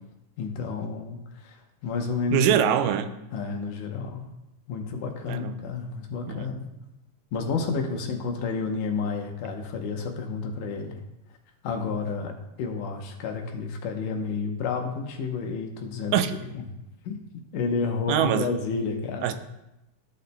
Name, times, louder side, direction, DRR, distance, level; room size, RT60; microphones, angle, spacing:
voice 1, 0.4-1.6 1.8-2.6 3.3-4.3 4.7-6.7 7.3-11.0 11.6-16.2 16.5-16.6 17.1-17.2 17.5-19.3, left 4 dB, 75° left, 3 dB, 2.3 m, -30 dB
voice 2, 2.3-3.1 5.3-5.6 6.3-6.5 16.1-16.3 18.1-18.5 19.2-19.3, right 10 dB, 85° right, 9 dB, 2.1 m, -23 dB
14.0 x 6.7 x 2.2 m, 0.91 s
omnidirectional pair, 3.8 m